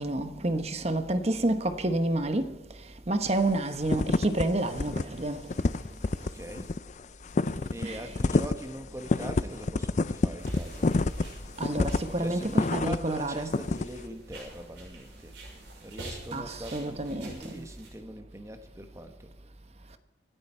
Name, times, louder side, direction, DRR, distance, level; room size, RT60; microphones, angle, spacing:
voice 1, 0.0-2.4 3.1-5.4 7.8-8.0 11.6-13.5 16.3-17.7, right 2 dB, 35° right, 1.1 m, -29 dB
sound 1, 3.3-3.5 3.8-4.4 4.7-5.0 5.3-13.2 13.5-13.9, left 3 dB, 40° left, 0.5 m, -27 dB
voice 2, 6.2-6.7 7.7-10.9 12.2-15.4 15.8-19.3, right 1 dB, 15° right, 1.4 m, -42 dB
sound 2, 10.4-17.9, right 1 dB, 85° right, 6.5 m, -45 dB
25.5 x 10.5 x 4.5 m
head